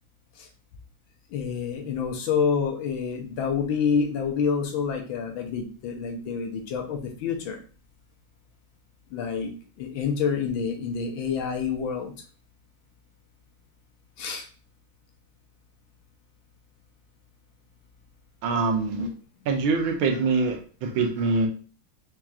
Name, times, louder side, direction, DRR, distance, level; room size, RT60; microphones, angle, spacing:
voice 1, 1.3-7.6 9.1-9.5 9.8-12.1 14.2-14.5, left 6 dB, 75° left, 3 dB, 1.5 m, -28 dB
voice 2, 18.4-19.1 19.4-21.5, right 4 dB, 80° right, 4 dB, 1.5 m, -24 dB
4.6 x 2.7 x 2.3 m, 0.38 s
omnidirectional pair, 2.2 m